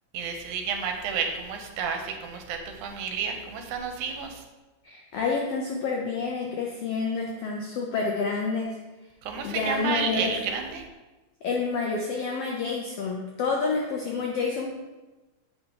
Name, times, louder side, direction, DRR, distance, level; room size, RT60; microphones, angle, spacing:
voice 1, 0.1-4.4 9.2-10.9, right 6 dB, 80° right, 4 dB, 2.2 m, -31 dB
voice 2, 4.8-8.8 9.4-10.3 11.4-14.7, left 4 dB, 80° left, 0 dB, 1.3 m, -28 dB
7.9 x 5.6 x 2.8 m, 1.1 s
omnidirectional pair, 3.5 m